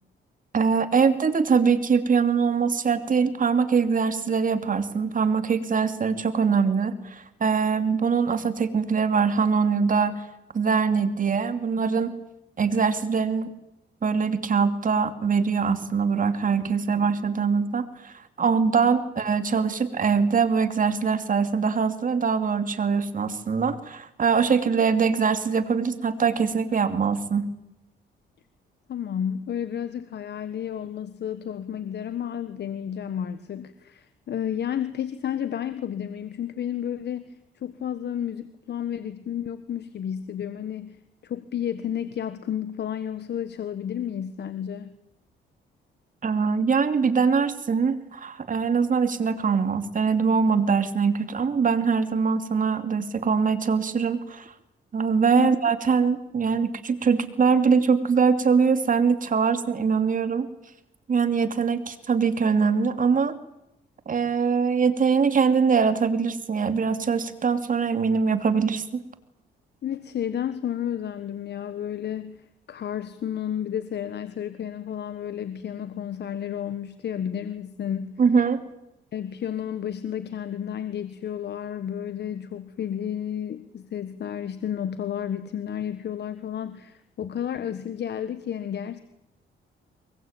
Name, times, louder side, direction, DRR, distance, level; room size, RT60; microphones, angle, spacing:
voice 1, 0.5-10.2 10.5-12.1 12.6-13.5 14.0-27.5 46.2-54.5 54.9-60.5 61.1-63.3 64.1-69.0 78.2-78.6, right 5 dB, 40° right, 10 dB, 2.8 m, -23 dB
voice 2, 28.9-41.0 41.2-45.0 55.4-55.5 69.8-78.2 79.1-89.0, left 9 dB, 60° left, 12 dB, 1.5 m, -31 dB
23.0 x 22.0 x 9.1 m, 0.86 s
cardioid pair, 90°, 20 cm